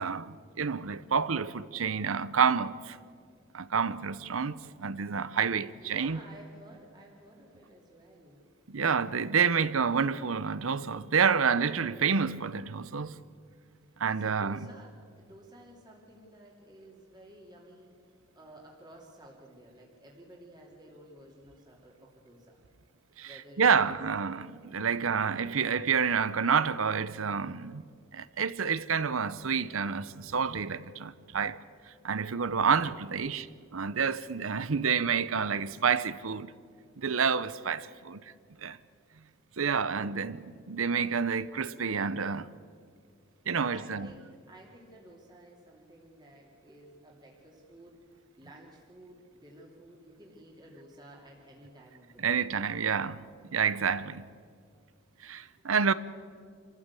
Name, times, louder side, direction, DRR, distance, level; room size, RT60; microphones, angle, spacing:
voice 1, 0.0-3.0 3.5-6.2 8.7-13.2 14.0-14.6 23.2-27.8 28.1-31.6 32.0-33.4 33.7-36.5 37.0-38.2 38.6-38.8 39.6-42.5 43.5-44.1 52.2-53.2 53.5-54.2 55.2-55.9, right 6 dB, 80° right, 0.8 m, -28 dB
voice 2, 4.0-4.4 5.5-8.4 14.1-17.9 18.4-22.6 23.2-24.0 24.8-25.6 32.9-34.3 39.5-40.4 43.5-52.4 55.2-55.3, right 1 dB, 20° right, 2.9 m, -53 dB
26.5 x 14.5 x 8.3 m
head